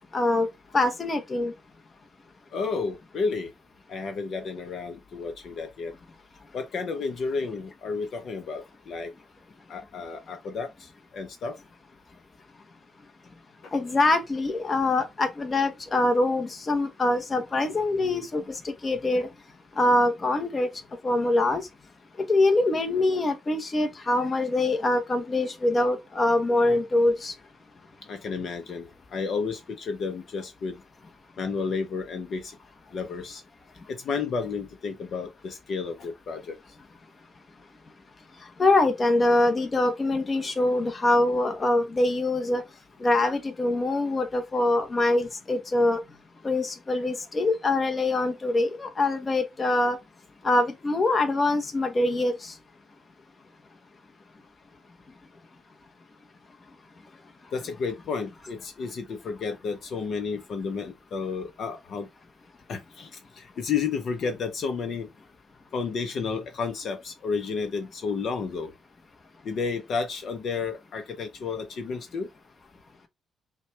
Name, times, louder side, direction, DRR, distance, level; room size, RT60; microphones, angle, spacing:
voice 1, 0.1-0.5 0.7-1.5 13.7-19.3 19.8-20.7 21.0-21.6 22.3-27.3 38.6-42.6 43.0-46.0 46.4-50.0 50.4-52.3, left 2 dB, 30° left, 1.0 m, -24 dB
voice 2, 2.5-3.5 3.9-5.9 6.5-9.1 9.7-11.6 13.6-13.7 28.1-30.8 31.4-32.6 32.9-33.4 33.9-36.6 57.5-62.1 62.7-65.1 65.7-68.7 69.4-72.3, left 5 dB, 60° left, 0.7 m, -31 dB
5.7 x 2.3 x 3.3 m
cardioid pair, 90°, 0 cm